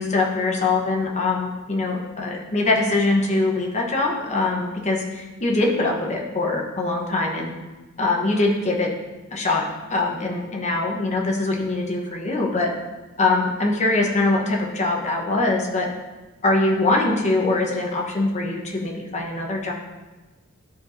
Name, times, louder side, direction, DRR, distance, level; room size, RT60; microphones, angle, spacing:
voice 1, 0.0-7.5 8.0-8.9 9.3-12.7 13.2-15.9 16.4-19.7, left 2 dB, 35° left, -1 dB, 1.1 m, -23 dB
12.5 x 4.6 x 2.7 m, 1.2 s
head